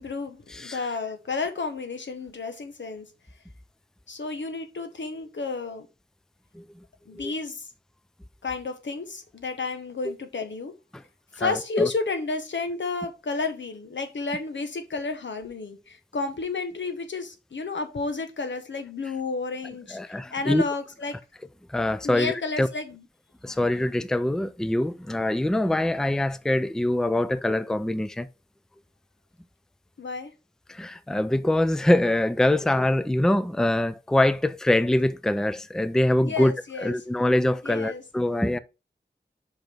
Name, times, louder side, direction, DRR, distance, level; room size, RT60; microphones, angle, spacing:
voice 1, 0.0-3.1 4.1-5.9 7.1-7.7 8.4-10.7 11.3-21.2 22.0-23.0 30.0-30.3 36.2-36.9 37.6-38.0, left 3 dB, 85° left, 1.1 m, -31 dB
voice 2, 0.5-0.8 6.5-6.6 7.1-7.3 10.0-10.2 10.9-11.0 11.4-11.9 19.9-20.6 21.7-22.7 23.4-28.3 30.7-36.5 36.8-38.6, left 1 dB, 5° left, 0.4 m, -24 dB
5.3 x 4.9 x 4.5 m
wide cardioid pair, 55°, 19 cm